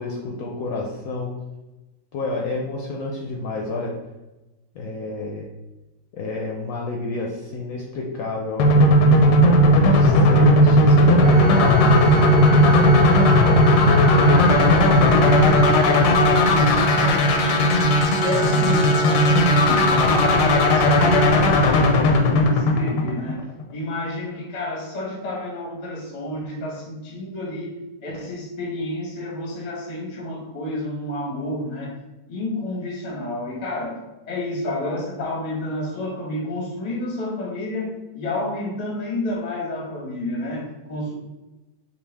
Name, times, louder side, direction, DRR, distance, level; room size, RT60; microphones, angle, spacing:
voice 1, 0.0-1.4 2.1-4.0 4.7-5.5 6.1-12.2, left 3 dB, 70° left, 0 dB, 0.9 m, -29 dB
sound 1, 8.6-23.5, left 1 dB, 90° left, 1.3 m, -16 dB
Organ, 11.2-22.0, right 1 dB, 75° right, 1.8 m, -26 dB
voice 2, 14.0-17.8 18.2-23.4 23.7-32.0 32.3-41.1, left 1 dB, 35° left, -1 dB, 0.6 m, -30 dB
5.3 x 2.3 x 3.4 m, 1.1 s
omnidirectional pair, 1.9 m